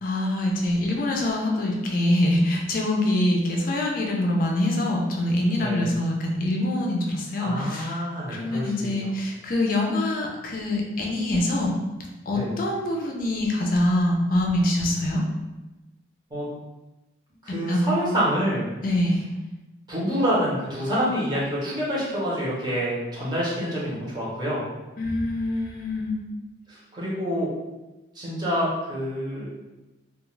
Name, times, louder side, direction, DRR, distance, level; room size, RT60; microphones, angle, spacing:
voice 1, 0.0-8.0 8.3-11.7 12.3-15.2 17.7-18.1 18.8-19.3 25.0-26.2, left 1 dB, 45° left, -1 dB, 0.4 m, -24 dB
voice 2, 7.4-8.9 12.3-12.5 16.3-16.5 17.4-18.7 19.9-24.6 26.7-27.5 28.1-29.5, equal, 20° right, -7 dB, 0.8 m, -27 dB
2.3 x 2.3 x 3.1 m, 1.1 s
head